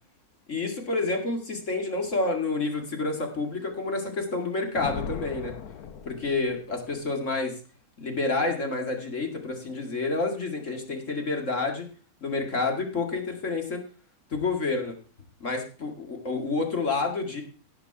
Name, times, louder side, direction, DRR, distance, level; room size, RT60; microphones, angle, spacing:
voice 1, 0.5-5.5 6.1-7.5 8.0-11.9 12.2-13.8 14.3-14.9 15.4-17.4, left 3 dB, 55° left, 2 dB, 2.5 m, -29 dB
Thunder, 4.8-7.0, left 7 dB, 80° left, 1.4 m, -38 dB
17.5 x 6.0 x 5.8 m, 0.38 s
omnidirectional pair, 1.6 m